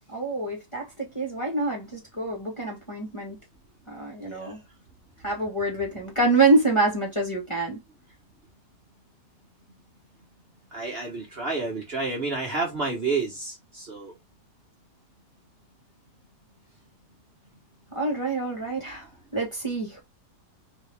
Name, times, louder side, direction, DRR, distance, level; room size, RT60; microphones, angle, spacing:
voice 1, 0.1-3.4 3.9-4.6 5.2-7.8 17.9-20.0, right 2 dB, 20° left, 1.2 m, -26 dB
voice 2, 4.3-4.6 10.7-14.1, right 3 dB, 40° right, 1.2 m, -30 dB
3.9 x 3.0 x 3.4 m
omnidirectional pair, 1.8 m